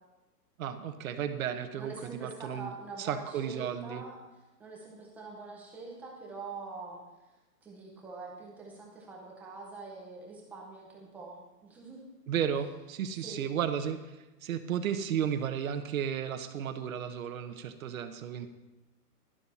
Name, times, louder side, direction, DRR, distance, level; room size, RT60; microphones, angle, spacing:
voice 1, 0.6-2.7 3.0-4.0 12.3-14.0 14.4-18.5, right 8 dB, 55° right, 9 dB, 1.1 m, -33 dB
voice 2, 1.8-4.2 4.6-7.0 7.6-12.1 13.2-13.5, right 3 dB, 5° right, -2 dB, 0.5 m, -44 dB
11.5 x 11.0 x 4.2 m, 1.1 s
hypercardioid pair, 155°, 48 cm